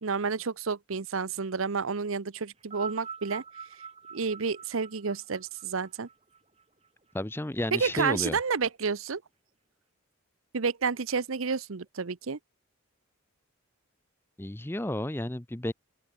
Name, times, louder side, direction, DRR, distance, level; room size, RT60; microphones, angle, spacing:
voice 1, 0.0-3.4 4.1-6.1 7.7-9.2 10.5-12.4, right 5 dB, 75° right, 0.8 m, -30 dB
sound 1, 2.6-7.1 8.0-8.1, right 6 dB, 30° right, 3.2 m, -45 dB
voice 2, 7.1-8.4 14.4-15.7, left 1 dB, 10° left, 0.7 m, -32 dB
open air
head